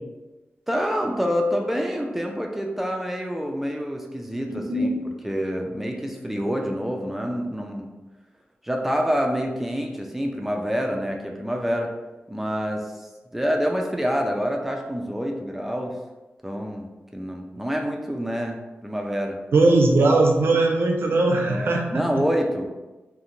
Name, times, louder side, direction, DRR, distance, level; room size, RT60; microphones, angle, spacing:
voice 1, 0.7-7.9 8.6-11.9 12.3-12.8 13.3-15.9 16.4-19.4 21.4-22.7, equal, 5° right, 1 dB, 0.3 m, -27 dB
voice 2, 4.5-5.0 19.5-22.0, right 2 dB, 75° right, 1 dB, 0.4 m, -20 dB
2.4 x 2.1 x 2.9 m, 1.1 s
wide cardioid pair, 110°, 4 cm